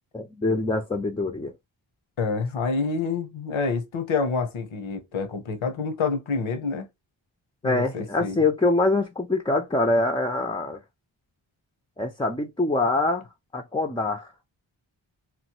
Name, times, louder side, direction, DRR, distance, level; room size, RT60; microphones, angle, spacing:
voice 1, 0.1-1.5 7.6-10.8 12.0-13.3 13.5-14.3, left 2 dB, 10° left, 0.4 m, -24 dB
voice 2, 2.2-6.9 7.6-8.4, left 4 dB, 85° left, 0.8 m, -27 dB
3.0 x 2.0 x 2.8 m
cardioid pair, 45°, 47 cm